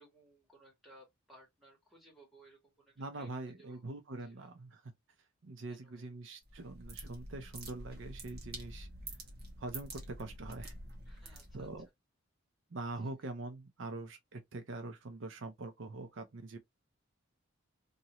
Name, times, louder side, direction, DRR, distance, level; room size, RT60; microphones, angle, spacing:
voice 1, 0.0-3.3 3.6-3.8 4.2-4.5 5.7-6.1 11.0-11.7 12.9-13.3, right 1 dB, ahead, 1.6 m, -61 dB
voice 2, 3.0-4.9 5.4-8.9 9.6-10.7 11.5-11.9 12.7-16.6, right 2 dB, 65° right, 0.6 m, -44 dB
sound 1, 6.4-11.9, right 1 dB, 50° right, 1.1 m, -47 dB
2.8 x 2.7 x 3.0 m
head